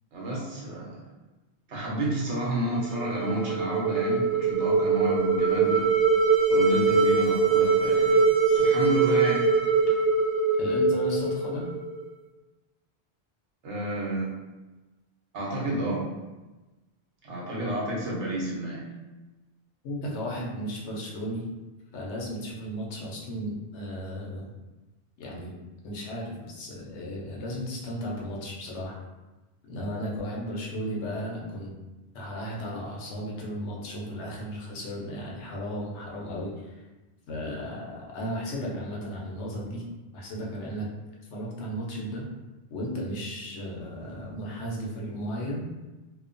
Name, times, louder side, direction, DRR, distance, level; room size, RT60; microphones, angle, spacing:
voice 1, 0.1-1.0 1.7-5.9 6.5-8.2 8.5-9.5 13.6-14.3 15.3-16.1 17.2-18.8, right 1 dB, 90° right, -4 dB, 1.1 m, -30 dB
sound 1, 2.8-12.0, right 4 dB, 65° right, 0.9 m, -23 dB
voice 2, 10.6-11.7 19.8-21.4 21.9-24.5 25.2-25.6 25.8-29.0 29.7-31.7 32.1-36.7 37.3-39.8 40.1-40.9 41.3-42.3 42.7-45.6, equal, 85° left, -2 dB, 1.0 m, -34 dB
2.8 x 2.1 x 2.5 m, 1.1 s
omnidirectional pair, 1.1 m